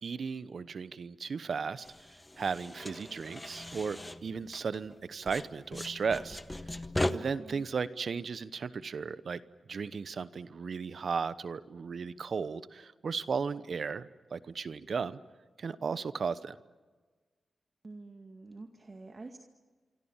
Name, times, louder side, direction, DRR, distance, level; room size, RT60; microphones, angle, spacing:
voice 1, 0.0-1.9 2.4-6.4 7.1-9.4 9.7-15.2 15.6-16.6, right 5 dB, 65° right, 15 dB, 1.0 m, -35 dB
sound 1, 1.8-5.0 5.3-7.1, left 1 dB, 15° left, 1.5 m, -38 dB
voice 2, 7.1-7.7 17.8-19.4, right 3 dB, 45° right, 4 dB, 2.2 m, -48 dB
26.5 x 25.0 x 7.4 m, 1.4 s
cardioid pair, 55°, 0 cm